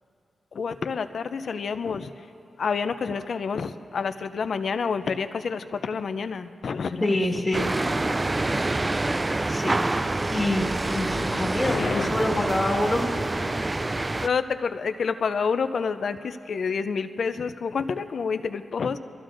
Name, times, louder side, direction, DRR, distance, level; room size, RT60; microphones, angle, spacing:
voice 1, 0.5-2.1 2.6-7.2 11.7-12.4 14.2-19.0, left 5 dB, 65° left, 10 dB, 0.5 m, -28 dB
voice 2, 7.0-7.7 9.5-9.9 10.3-13.1, left 1 dB, 15° left, 0 dB, 1.7 m, -26 dB
sound 1, 7.5-14.3, right 2 dB, 25° right, 0.3 m, -26 dB
24.5 x 14.0 x 2.6 m, 2.6 s
cardioid pair, 65°, 0 cm